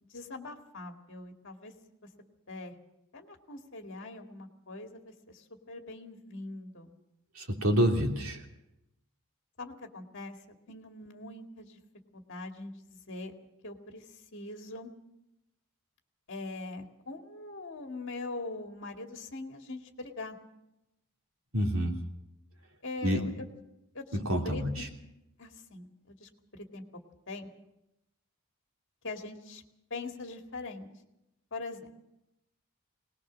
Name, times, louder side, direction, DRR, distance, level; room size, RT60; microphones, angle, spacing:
voice 1, 0.1-1.7 2.5-2.8 3.1-4.9 5.3-6.9 9.6-10.3 10.7-11.8 12.1-13.3 13.6-14.0 14.3-14.9 16.3-20.4 22.8-23.5 23.9-24.0 24.4-24.9 25.4-26.8 27.3-27.5 29.0-29.6 29.9-30.9 31.5-31.9, left 2 dB, 55° left, 4 dB, 2.1 m, -42 dB
voice 2, 7.3-8.4 21.5-22.0 23.0-23.2 24.1-24.9, equal, 70° right, 2 dB, 3.1 m, -28 dB
21.0 x 19.5 x 6.3 m, 0.88 s
head